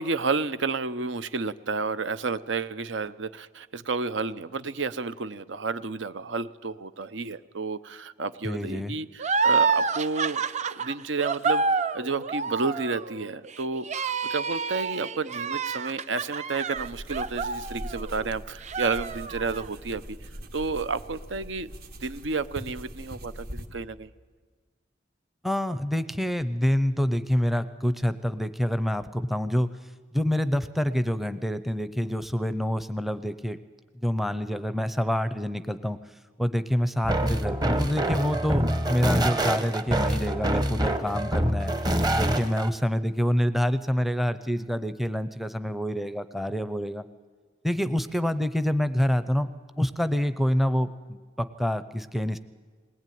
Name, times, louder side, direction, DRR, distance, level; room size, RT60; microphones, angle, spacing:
voice 1, 0.0-10.4 10.7-20.2 20.5-21.7 22.0-24.1, right 4 dB, 75° right, 13 dB, 0.8 m, -31 dB
voice 2, 8.4-8.9 25.4-29.7 30.1-33.6 34.0-36.0 36.4-41.7 42.1-47.0 47.6-49.5 49.8-52.4, equal, ahead, 12 dB, 0.6 m, -27 dB
sound 1, 9.2-18.3 18.6-19.7, right 5 dB, 40° right, 0.6 m, -28 dB
sound 2, 16.8-23.7, equal, 55° right, 1.9 m, -41 dB
sound 3, 37.0-42.7, right 1 dB, 20° right, 1.1 m, -26 dB
21.0 x 19.0 x 9.3 m, 1.5 s
head